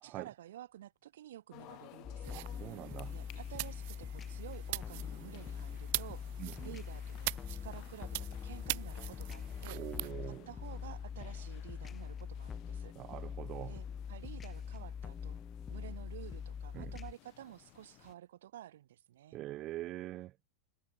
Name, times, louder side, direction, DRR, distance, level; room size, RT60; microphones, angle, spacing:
voice 1, 0.0-2.4 3.1-6.2 6.6-9.8 10.3-12.9 13.7-15.4 15.7-19.5, right 12 dB, 80° right, 2.1 m, -51 dB
sound 1, 1.5-18.1, left 21 dB, 35° left, 3.6 m, -58 dB
sound 2, 2.0-17.1, left 7 dB, 15° left, 0.7 m, -43 dB
sound 3, 2.2-10.1, right 24 dB, 50° right, 0.9 m, -43 dB
voice 2, 2.3-3.2 6.4-6.8 9.7-10.5 13.0-13.8 16.7-16.9 19.3-20.3, right 15 dB, 30° right, 0.3 m, -44 dB
supercardioid pair, 165°, 0 cm